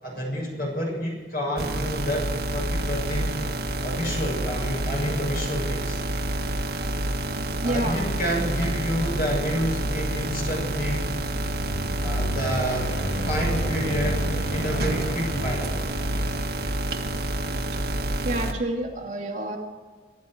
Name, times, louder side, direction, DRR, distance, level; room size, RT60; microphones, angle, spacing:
voice 1, 0.0-3.4 3.8-6.0 7.6-11.1 12.0-15.8, equal, 55° left, -1 dB, 7.0 m, -29 dB
sound 1, 1.6-18.5, right 1 dB, 55° right, 1.7 m, -28 dB
voice 2, 7.6-8.0 18.2-19.6, right 1 dB, 40° right, -1 dB, 2.6 m, -28 dB
sound 2, 11.2-16.5, right 1 dB, 80° left, 2.5 m, -34 dB
24.5 x 12.0 x 4.6 m, 1.4 s
head